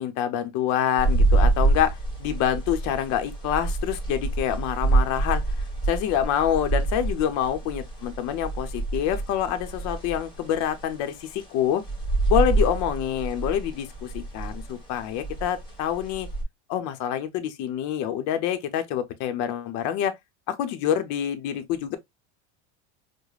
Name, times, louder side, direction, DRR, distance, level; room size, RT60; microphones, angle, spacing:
voice 1, 0.0-5.4 5.8-11.8 12.3-16.3 16.7-20.1 20.5-22.0, left 10 dB, 55° left, 0.7 m, -26 dB
sound 1, 1.0-16.4, right 2 dB, 15° left, 1.3 m, -27 dB
4.8 x 2.1 x 2.3 m
cardioid pair, 145°, 35 cm